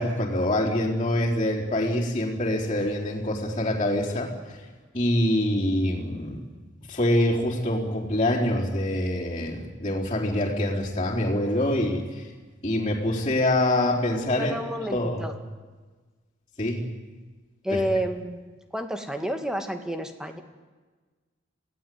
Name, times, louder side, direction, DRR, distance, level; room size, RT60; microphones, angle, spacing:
voice 1, 0.0-4.6 4.9-6.4 6.9-12.3 12.6-14.6 14.9-15.3 16.6-16.8 17.7-17.8, left 1 dB, 30° left, -7 dB, 4.0 m, -25 dB
voice 2, 14.4-15.3 17.6-18.4 18.7-20.4, equal, 5° right, 6 dB, 1.9 m, -29 dB
27.0 x 17.0 x 9.4 m, 1.3 s
head